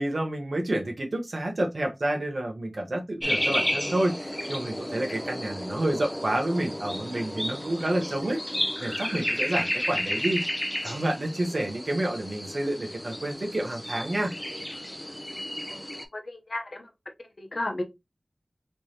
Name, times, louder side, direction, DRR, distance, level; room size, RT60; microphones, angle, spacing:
voice 1, 0.0-8.4 8.8-10.4 10.8-14.3, right 1 dB, 70° right, 1.1 m, -29 dB
sound 1, 3.2-16.1, equal, 10° left, 0.6 m, -32 dB
voice 2, 16.1-16.9 17.4-17.8, left 1 dB, 70° left, 0.8 m, -33 dB
3.4 x 3.2 x 2.8 m
wide cardioid pair, 60°, 0 cm